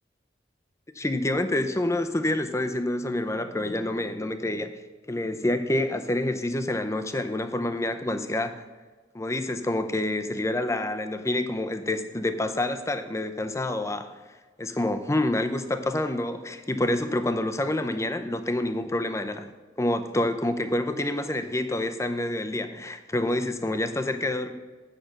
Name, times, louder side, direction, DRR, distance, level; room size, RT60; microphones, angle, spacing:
voice 1, 1.0-4.8 5.1-8.6 9.1-14.2 14.6-19.5 19.8-24.5, left 1 dB, 15° left, 8 dB, 0.6 m, -27 dB
9.0 x 5.8 x 6.4 m, 1.3 s
head